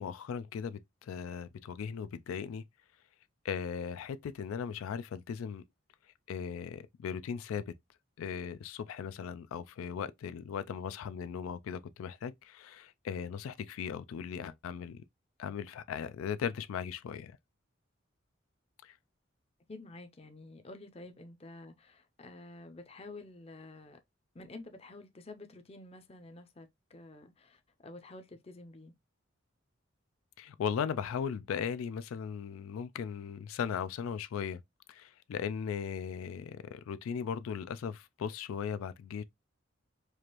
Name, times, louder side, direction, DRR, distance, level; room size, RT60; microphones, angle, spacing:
voice 1, 0.0-2.6 3.4-5.6 6.3-7.7 8.2-15.0 15.4-17.3 18.8-18.9 30.4-34.6 34.9-39.2, left 7 dB, 90° left, 0.3 m, -38 dB
voice 2, 19.7-24.0 24.3-28.9, left 2 dB, 30° left, 0.5 m, -50 dB
4.7 x 2.5 x 2.9 m
head